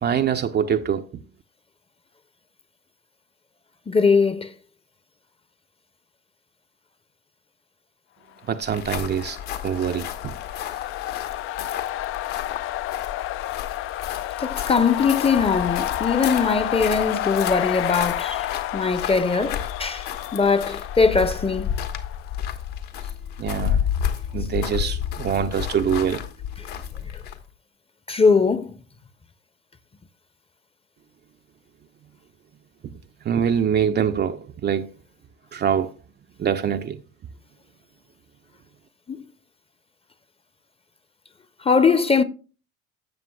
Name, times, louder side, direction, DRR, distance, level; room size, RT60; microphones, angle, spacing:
voice 1, 0.0-1.1 8.5-9.4 9.6-10.3 23.4-23.9 24.3-26.2 33.2-34.9 35.5-35.9 36.4-37.0, right 8 dB, 25° right, 0.5 m, -24 dB
voice 2, 3.9-4.5 14.4-18.5 18.7-21.7 28.1-28.7 39.1-39.2 41.6-42.2, left 5 dB, 15° left, 0.7 m, -21 dB
sound 1, 8.6-27.5, left 9 dB, 60° left, 1.4 m, -32 dB
sound 2, 8.7-22.5, left 14 dB, 35° left, 0.4 m, -30 dB
13.0 x 7.4 x 2.3 m
figure-of-eight pair, 65°, 39 cm